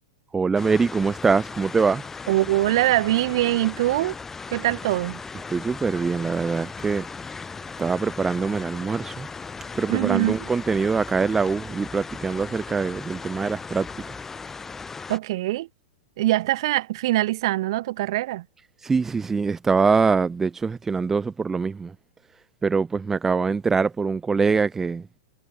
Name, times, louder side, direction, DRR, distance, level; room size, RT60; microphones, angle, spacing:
voice 1, 0.3-2.0 5.5-7.1 7.8-9.3 9.8-13.9 18.8-21.9 22.6-25.0, right 5 dB, 10° right, 1.0 m, -23 dB
sound 1, 0.6-15.2, left 4 dB, 10° left, 1.9 m, -37 dB
voice 2, 2.3-4.1 4.5-5.2 9.9-10.4 15.1-15.7 16.2-18.4, right 16 dB, 60° right, 2.5 m, -23 dB
hypercardioid pair, 140°, 3 cm